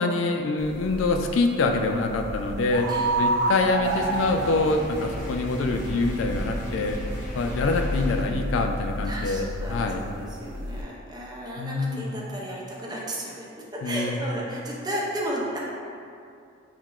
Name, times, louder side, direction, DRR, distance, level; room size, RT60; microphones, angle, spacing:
voice 1, 0.0-2.9 3.2-7.0 7.4-10.1 11.5-12.1 13.8-14.2, left 3 dB, 80° left, 4 dB, 0.3 m, -25 dB
sound 1, 0.6-10.8, right 1 dB, 80° right, 0.3 m, -31 dB
sound 2, 3.8-8.2, equal, 45° left, 0.6 m, -38 dB
voice 2, 9.1-15.6, right 1 dB, 20° right, -4 dB, 0.5 m, -34 dB
5.9 x 2.2 x 2.3 m, 2.4 s
head